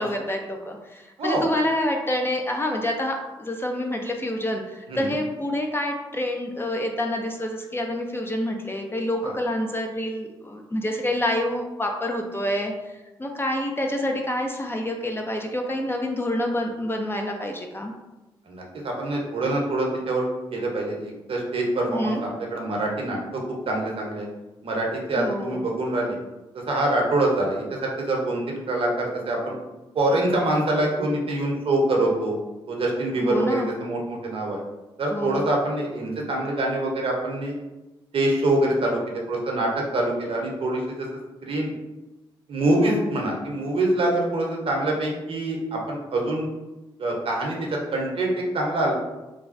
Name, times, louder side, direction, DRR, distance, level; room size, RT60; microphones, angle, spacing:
voice 1, 0.0-12.7 13.2-17.9 21.9-22.2 25.2-25.6 33.2-33.7 35.1-35.5 42.8-43.1, left 1 dB, 20° left, 2 dB, 0.5 m, -27 dB
voice 2, 18.5-20.2 20.5-23.4 23.7-24.3 24.6-26.2 26.5-29.5 29.9-32.4 32.7-34.6 35.0-37.5 38.1-41.1 41.4-41.7 42.5-46.5 47.0-48.9, right 1 dB, 55° right, -1 dB, 0.8 m, -25 dB
3.2 x 2.2 x 2.5 m, 1.0 s
hypercardioid pair, 45°, 11 cm